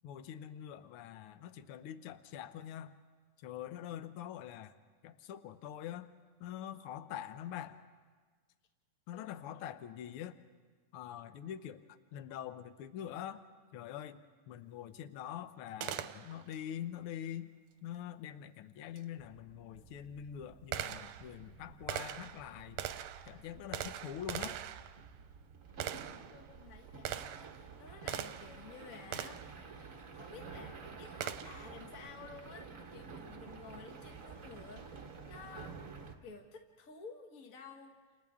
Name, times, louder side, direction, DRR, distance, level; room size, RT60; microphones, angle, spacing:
voice 1, 0.0-2.9 3.4-4.7 5.0-6.1 6.4-7.8 9.1-10.4 10.9-11.8 12.1-13.4 13.7-14.2 14.5-17.5 17.8-22.8 23.3-24.6, left 10 dB, 75° left, 11 dB, 1.3 m, -44 dB
Gunshot gunfire, 15.8-16.6 19.0-19.1 19.8-28.6 29.1-29.6 31.2-31.7, right 11 dB, 75° right, 1.8 m, -42 dB
sound 1, 19.2-36.1, right 5 dB, 50° right, 1.0 m, -51 dB
voice 2, 26.3-29.4 29.7-35.8 36.2-38.0, left 5 dB, 45° left, 3 dB, 1.1 m, -53 dB
29.5 x 28.0 x 3.6 m, 1.5 s
omnidirectional pair, 3.4 m